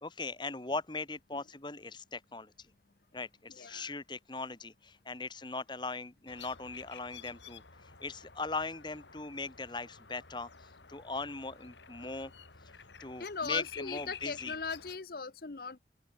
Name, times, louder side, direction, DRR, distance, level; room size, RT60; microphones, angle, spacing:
voice 1, 0.0-2.5 3.1-12.3 13.0-14.5, left 3 dB, 25° left, 1.2 m, -40 dB
voice 2, 3.5-3.9 13.2-15.8, left 5 dB, 55° left, 0.8 m, -39 dB
sound 1, 6.3-15.0, left 7 dB, 80° left, 3.2 m, -51 dB
open air
head